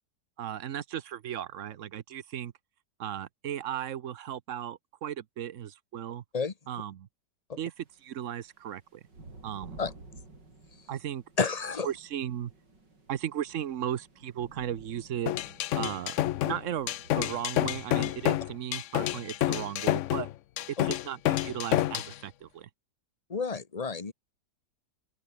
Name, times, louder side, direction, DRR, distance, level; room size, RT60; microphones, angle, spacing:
voice 1, 0.4-2.5 3.0-6.2 6.7-7.1 7.6-9.0 9.4-9.8 10.9-11.2 11.8-12.5 13.1-15.3 15.7-16.2 16.4-20.3 20.8-22.7, right 10 dB, 55° right, 1.0 m, -36 dB
sound 1, 7.8-19.3, right 3 dB, 85° right, 6.2 m, -54 dB
voice 2, 11.4-11.9 20.8-20.9 23.3-24.1, left 5 dB, 25° left, 1.1 m, -30 dB
sound 2, 15.3-22.1, left 14 dB, 85° left, 0.6 m, -29 dB
open air
omnidirectional pair, 1.9 m